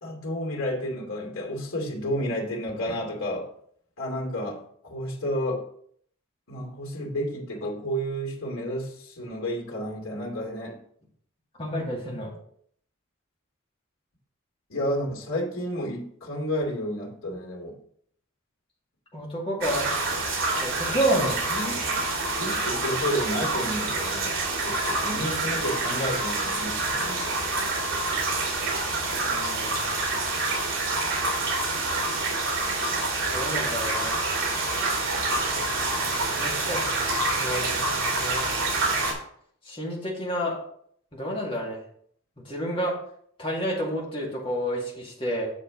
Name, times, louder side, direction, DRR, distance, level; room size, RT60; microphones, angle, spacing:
voice 1, 0.0-3.5 4.0-5.6 6.5-10.8 14.7-17.8 21.1-22.0 22.4-24.3 24.6-27.4, equal, 75° left, -1 dB, 2.6 m, -31 dB
voice 2, 11.6-12.3 19.1-19.9 20.6-21.3 29.2-29.9 33.3-34.2 36.4-36.9 37.4-37.8 38.1-38.5 39.6-40.6 41.1-41.8 42.4-42.9 43.4-45.5, equal, 25° left, -3 dB, 2.1 m, -29 dB
sound 1, 19.6-39.1, right 2 dB, 65° right, 2.7 m, -27 dB
7.4 x 6.8 x 3.9 m, 0.64 s
head